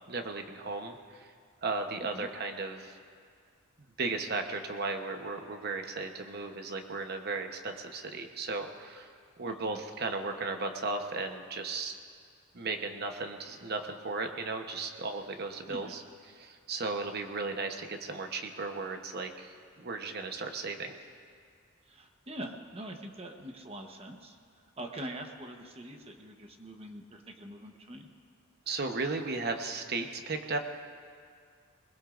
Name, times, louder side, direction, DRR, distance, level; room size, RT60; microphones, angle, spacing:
voice 1, 0.1-1.3 1.6-3.0 4.0-9.1 9.4-11.9 12.5-16.0 16.3-20.9 28.7-30.6, right 3 dB, 50° right, 5 dB, 1.0 m, -35 dB
voice 2, 9.4-9.8 15.7-16.1 21.9-24.4 24.8-28.1, right 1 dB, 30° right, 3 dB, 1.0 m, -44 dB
21.0 x 21.0 x 2.5 m, 2.1 s
head